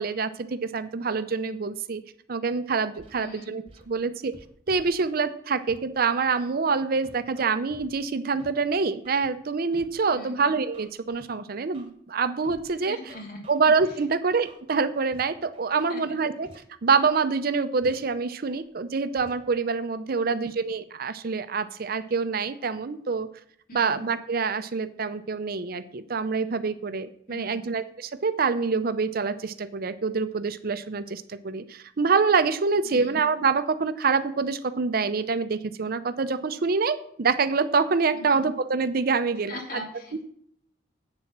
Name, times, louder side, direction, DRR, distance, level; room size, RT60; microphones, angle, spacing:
voice 1, 0.0-2.0 2.3-4.3 4.7-13.0 13.5-16.5 16.8-23.3 23.7-39.8, right 4 dB, 55° right, 12 dB, 0.6 m, -26 dB
Scratching (performance technique), 3.0-3.1 3.7-3.8 4.3-5.1 5.7-5.8 6.3-6.5 7.0-7.9 8.4-8.5 9.0-9.3 9.7-9.9 10.4-11.2 11.7-11.9 12.4-12.6 13.1-13.9 14.4-14.6 15.1-15.2 15.5-15.9 16.4-16.6 17.0-17.2 17.8-17.9 18.5-18.6 19.2-19.3, right 1 dB, 30° right, 1.4 m, -50 dB
voice 2, 3.2-3.5 10.1-10.3 12.8-13.4 15.7-16.0 20.2-20.4 23.7-24.0 27.3-27.6 32.8-33.1 38.1-38.4 39.5-40.2, left 1 dB, 50° left, 0 dB, 2.9 m, -41 dB
8.8 x 7.2 x 5.9 m, 0.65 s
head